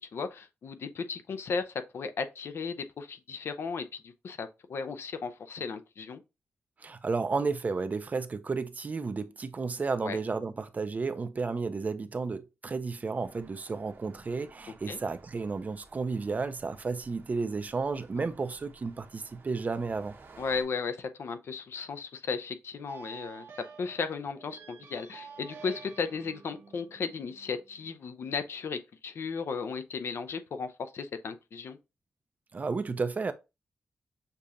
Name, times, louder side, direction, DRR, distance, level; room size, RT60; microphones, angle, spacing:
voice 1, 0.0-6.2 10.0-10.2 14.9-15.0 18.2-18.3 20.4-23.5 23.8-31.8, left 5 dB, 65° left, 0.5 m, -35 dB
voice 2, 6.8-20.1 32.5-33.3, right 4 dB, 35° right, 0.5 m, -32 dB
sound 1, 13.2-20.6, right 3 dB, 55° right, 1.0 m, -56 dB
sound 2, 22.9-27.9, right 5 dB, 80° right, 0.9 m, -50 dB
6.7 x 2.8 x 2.5 m
wide cardioid pair, 100°, 4 cm